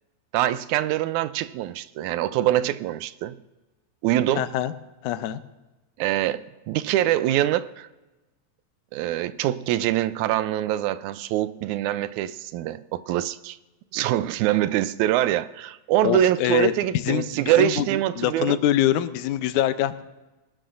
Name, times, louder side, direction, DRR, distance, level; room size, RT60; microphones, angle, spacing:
voice 1, 0.3-3.4 4.0-4.5 6.0-7.9 8.9-13.6 13.9-18.6, right 13 dB, 85° right, 1.9 m, -24 dB
voice 2, 4.4-4.7 5.0-5.4 16.0-17.9 18.2-20.0, left 12 dB, 85° left, 2.1 m, -24 dB
20.5 x 12.5 x 2.5 m
omnidirectional pair, 3.4 m